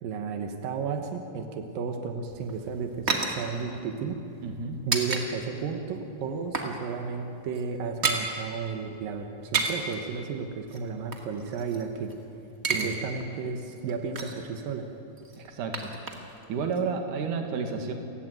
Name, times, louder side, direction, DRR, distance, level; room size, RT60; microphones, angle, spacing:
voice 1, 0.0-4.2 4.8-12.1 12.7-14.9, right 5 dB, 90° right, 5 dB, 3.1 m, -33 dB
sound 1, 2.3-5.2 5.5-5.7 6.1-6.8 7.0-7.2 7.4-8.3 9.3-9.9 10.7-12.1 12.4-12.9 13.2-13.3 13.7-14.5 15.2-16.5 16.7-16.8, right 4 dB, 30° right, 2.1 m, -31 dB
voice 2, 4.4-4.8 12.7-12.9 15.4-15.9 16.5-17.9, right 5 dB, 70° right, 4 dB, 3.4 m, -31 dB
29.0 x 16.5 x 9.3 m, 2.8 s
omnidirectional pair, 3.8 m